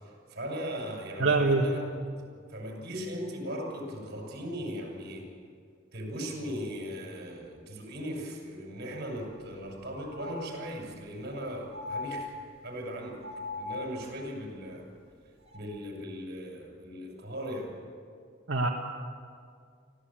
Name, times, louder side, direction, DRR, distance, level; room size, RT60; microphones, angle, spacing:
voice 1, 0.3-1.8 2.2-5.3 5.9-12.3 12.6-13.2 13.6-14.9 15.5-17.7, equal, 55° right, 0 dB, 6.6 m, -38 dB
voice 2, 1.2-1.7 18.5-18.7, right 3 dB, 80° right, 0 dB, 1.6 m, -24 dB
sound 1, 9.1-9.2 9.6-9.7 10.1-11.1 11.7-12.8 13.2-14.2 15.4-15.6, left 3 dB, 35° right, 3.7 m, -40 dB
24.5 x 15.5 x 8.9 m, 2.2 s
head